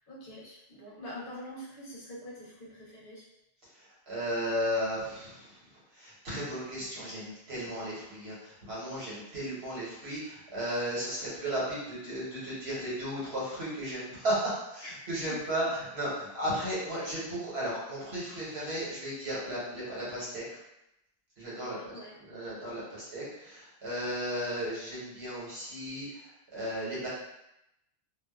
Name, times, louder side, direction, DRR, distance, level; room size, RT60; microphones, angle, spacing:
voice 1, 0.1-3.3 14.8-14.9 15.2-15.7 21.6-22.2, equal, 60° left, -6 dB, 0.9 m, -45 dB
voice 2, 3.7-20.6 21.4-27.1, equal, 75° right, -7 dB, 1.2 m, -35 dB
2.4 x 2.2 x 2.3 m, 0.85 s
omnidirectional pair, 1.1 m